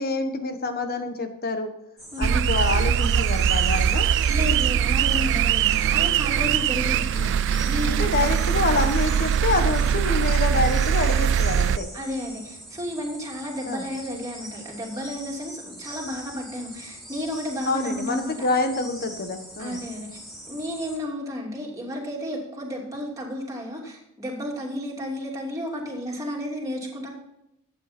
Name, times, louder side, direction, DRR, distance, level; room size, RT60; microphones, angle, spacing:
voice 1, 0.0-1.7 2.2-4.1 7.1-7.3 7.9-11.9 13.7-13.8 17.7-19.8, left 3 dB, 45° left, 7 dB, 1.3 m, -27 dB
sound 1, 2.0-21.0, right 1 dB, ahead, 3.5 m, -42 dB
sound 2, 2.2-11.8, right 8 dB, 55° right, 0.3 m, -22 dB
voice 2, 4.3-7.3 7.6-8.0 11.9-18.4 19.6-20.1 20.5-27.1, equal, 15° right, -2 dB, 2.8 m, -32 dB
12.5 x 8.7 x 4.4 m, 0.84 s
head